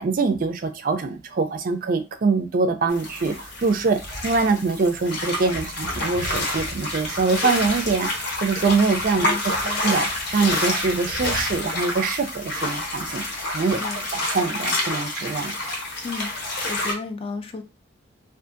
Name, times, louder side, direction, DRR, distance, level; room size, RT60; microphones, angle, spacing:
voice 1, 0.0-9.3 9.7-13.8 14.1-15.5, right 4 dB, 50° right, 0.4 m, -24 dB
sound 1, 2.9-16.9, left 1 dB, 60° left, 0.8 m, -28 dB
voice 2, 9.2-9.9 13.8-14.1 16.0-16.3 16.7-17.6, left 4 dB, 30° left, 0.4 m, -33 dB
2.6 x 2.4 x 2.5 m
head